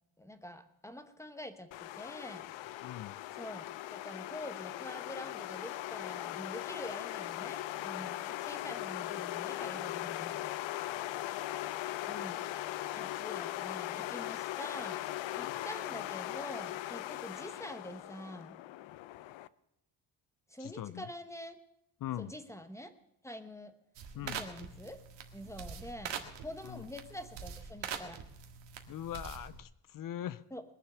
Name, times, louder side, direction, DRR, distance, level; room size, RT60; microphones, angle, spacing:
voice 1, 0.2-2.5 3.3-10.4 12.1-12.4 12.9-15.0 15.3-18.5 20.5-21.6 22.2-22.9 23.2-23.7 24.1-25.0 25.3-26.1 26.4-28.2 30.5-30.6, left 1 dB, 5° left, 9 dB, 0.9 m, -46 dB
sound 1, 1.7-19.5, left 15 dB, 90° left, 0.7 m, -39 dB
voice 2, 2.8-3.2 10.8-11.0 15.4-15.6 20.6-21.0 22.0-22.3 24.2-24.4 26.7-26.8 28.9-30.4, left 12 dB, 50° left, 17 dB, 0.5 m, -41 dB
sound 2, 23.9-29.6, right 7 dB, 75° right, 1.8 m, -44 dB
21.5 x 7.3 x 6.7 m, 0.84 s
cardioid pair, 155°, 44 cm